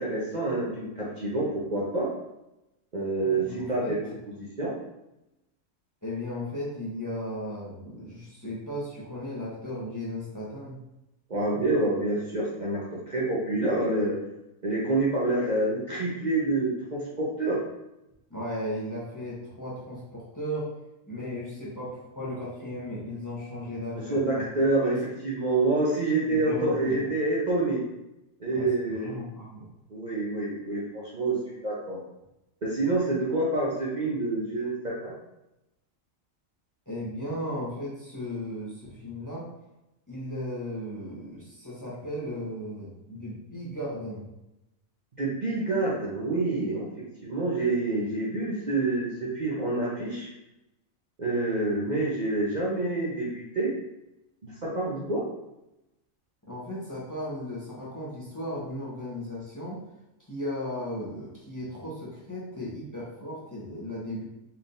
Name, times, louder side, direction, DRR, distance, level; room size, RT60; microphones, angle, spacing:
voice 1, 0.0-2.1 2.9-4.0 4.3-4.7 11.3-14.2 14.6-17.6 24.1-27.8 28.4-29.2 29.9-32.0 32.6-35.1 45.2-46.9 47.2-50.3 51.2-53.7 54.4-55.2, right 2 dB, 40° right, -7 dB, 0.8 m, -27 dB
voice 2, 3.2-4.0 6.0-10.8 18.3-20.7 21.1-24.4 24.8-25.0 26.3-27.1 28.5-29.7 36.9-39.5 40.1-44.3 56.5-59.8 60.3-64.2, left 1 dB, 15° left, -7 dB, 1.1 m, -36 dB
4.3 x 3.6 x 2.6 m, 0.91 s
omnidirectional pair, 1.5 m